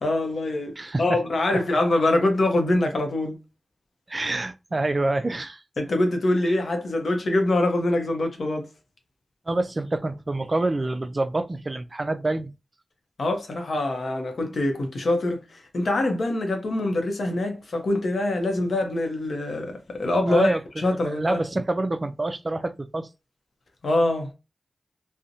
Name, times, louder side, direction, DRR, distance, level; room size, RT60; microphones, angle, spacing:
voice 1, 0.0-3.4 5.8-8.7 13.2-21.4 23.8-24.3, left 2 dB, 75° left, 0.6 m, -24 dB
voice 2, 0.8-1.2 4.1-5.6 6.4-6.6 9.5-12.5 14.4-14.5 20.3-23.1, right 2 dB, 40° right, 0.3 m, -27 dB
2.5 x 2.0 x 2.6 m
cardioid pair, 40°, 0 cm